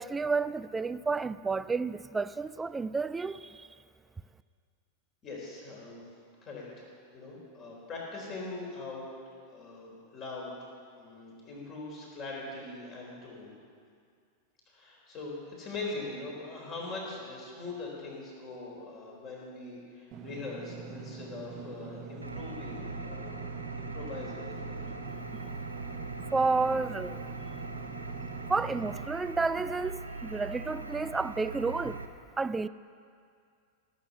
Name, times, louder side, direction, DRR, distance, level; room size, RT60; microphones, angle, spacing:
voice 1, 0.0-3.7 26.3-27.2 28.5-32.0 32.4-32.7, right 4 dB, 10° right, 0.3 m, -31 dB
voice 2, 5.2-6.0 6.4-9.1 9.5-10.7 11.0-13.5 14.7-23.5 23.8-25.0, left 3 dB, 30° left, 4.1 m, -42 dB
Engine / Mechanisms, 20.1-29.0, right 7 dB, 35° right, 0.9 m, -44 dB
Engine, 22.2-32.1, right 3 dB, 85° right, 0.9 m, -41 dB
17.0 x 7.5 x 8.2 m
figure-of-eight pair, 90°, 0 cm